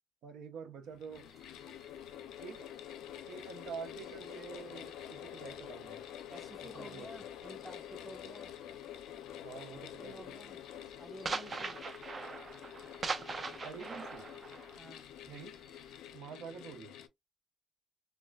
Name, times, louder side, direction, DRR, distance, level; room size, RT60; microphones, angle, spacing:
voice 1, 0.2-1.3 2.4-2.7 3.3-6.0 6.6-7.1 9.4-10.3 13.6-14.3 15.3-15.5 16.1-17.0, right 6 dB, 85° right, 0.6 m, -47 dB
sound 1, 0.8-17.1, left 10 dB, 90° left, 0.4 m, -48 dB
sound 2, 1.2-5.0 5.4-8.8 9.0-9.4 9.7-16.1, right 4 dB, 35° right, 0.5 m, -43 dB
voice 2, 6.3-8.5 10.0-10.6 11.0-11.8 14.8-15.1, right 1 dB, 5° right, 0.9 m, -52 dB
4.0 x 2.1 x 2.3 m
cardioid pair, 90°, 0 cm